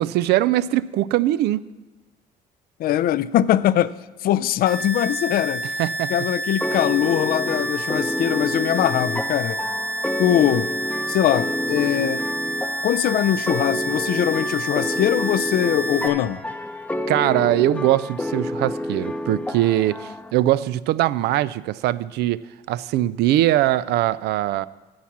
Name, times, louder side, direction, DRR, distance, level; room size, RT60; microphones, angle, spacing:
voice 1, 0.0-1.6 5.8-6.1 17.1-22.4 22.7-24.7, right 14 dB, 75° right, 0.4 m, -21 dB
voice 2, 2.8-5.6 6.1-9.6 10.2-10.7 11.1-12.2 12.8-16.4, left 12 dB, 60° left, 0.4 m, -21 dB
sound 1, 4.7-16.1, right 1 dB, 40° right, 1.6 m, -29 dB
sound 2, 6.6-20.3, left 1 dB, 5° left, 0.6 m, -29 dB
11.5 x 7.3 x 6.0 m
cardioid pair, 110°, 17 cm